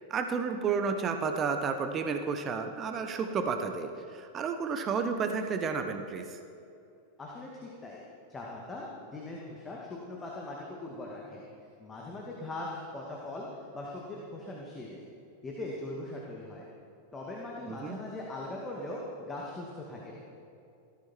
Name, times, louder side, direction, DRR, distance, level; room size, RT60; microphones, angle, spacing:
voice 1, 0.1-6.4 17.7-18.0, right 5 dB, 25° right, 7 dB, 1.2 m, -31 dB
voice 2, 7.2-8.0 8.3-11.4 11.8-15.1 15.4-16.7 17.1-20.2, left 2 dB, 15° left, -3 dB, 2.3 m, -40 dB
18.0 x 14.0 x 4.6 m, 2.8 s
figure-of-eight pair, 90°, 0 cm